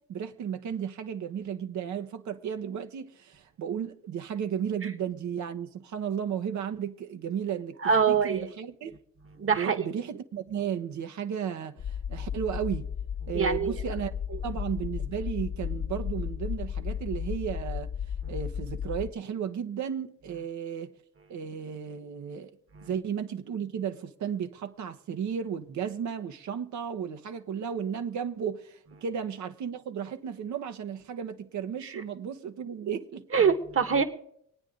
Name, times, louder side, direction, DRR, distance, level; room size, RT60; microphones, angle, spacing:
voice 1, 0.1-9.0 9.5-12.9 13.3-14.1 14.4-17.9 18.3-20.9 21.3-22.5 22.8-33.4, right 8 dB, 70° right, 1.2 m, -34 dB
voice 2, 7.8-8.5 9.4-9.8 13.3-13.7 22.7-22.9 33.3-34.0, right 6 dB, 45° right, 1.6 m, -24 dB
sound 1, 11.8-19.1, left 8 dB, 55° left, 1.1 m, -34 dB
24.5 x 9.4 x 3.9 m
cardioid pair, 90°, 30 cm